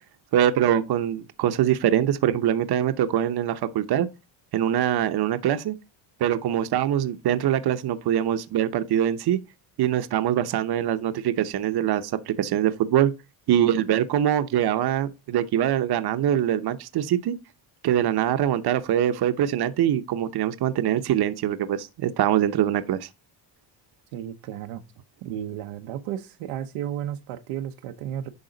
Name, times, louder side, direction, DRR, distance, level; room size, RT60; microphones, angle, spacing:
voice 1, 0.3-4.1 4.5-5.7 6.2-9.4 9.8-13.1 13.5-17.3 17.8-23.1, right 11 dB, 50° right, 0.8 m, -23 dB
voice 2, 24.1-24.8 25.2-28.3, right 10 dB, 85° right, 0.9 m, -33 dB
10.5 x 3.7 x 3.9 m
cardioid pair, 100°, 49 cm